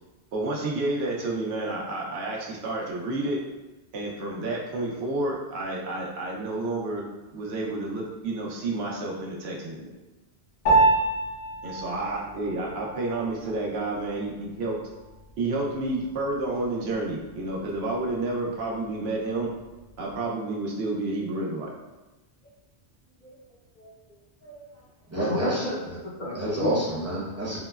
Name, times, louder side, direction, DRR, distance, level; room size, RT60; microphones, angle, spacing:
voice 1, 0.3-3.4 3.9-7.1 7.3-9.9 11.6-14.8 15.4-19.5 20.0-21.7, right 2 dB, 75° right, -2 dB, 0.9 m, -30 dB
Piano, 10.7-20.3, right 2 dB, 70° left, 1.0 m, -30 dB
voice 2, 23.8-24.7 25.2-26.7, left 2 dB, 50° left, -6 dB, 0.6 m, -33 dB
voice 3, 25.1-26.0 26.3-27.6, right 1 dB, 15° right, -7 dB, 0.7 m, -28 dB
3.7 x 2.0 x 2.2 m, 1.1 s
omnidirectional pair, 1.1 m